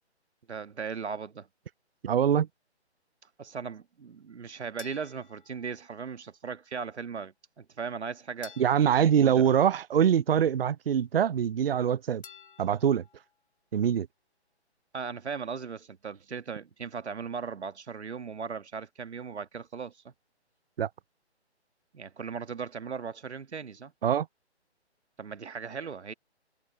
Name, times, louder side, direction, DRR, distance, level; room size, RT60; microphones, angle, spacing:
voice 1, 0.5-1.5 3.4-8.6 9.0-9.5 14.9-20.1 21.9-23.9 25.2-26.1, right 6 dB, 70° right, 1.6 m, -38 dB
voice 2, 2.0-2.5 8.6-12.2 12.6-13.0 13.7-14.1 20.8-20.9 24.0-24.3, right 8 dB, 55° right, 0.5 m, -24 dB
sound 1, 4.8-6.3 8.4-10.3 12.2-13.4, left 6 dB, 50° left, 8.0 m, -53 dB
hypercardioid pair, 165°, 34 cm